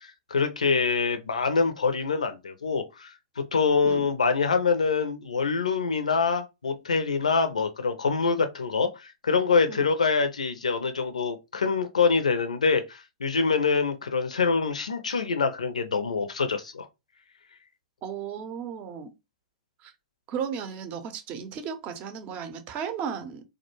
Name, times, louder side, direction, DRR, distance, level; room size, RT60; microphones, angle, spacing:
voice 1, 0.0-3.1 3.4-16.9, left 5 dB, 85° left, 0.4 m, -25 dB
voice 2, 18.0-19.1 19.8-19.9 20.3-23.4, right 7 dB, 35° right, 0.6 m, -35 dB
2.3 x 2.2 x 2.8 m
hypercardioid pair, 105°, 4 cm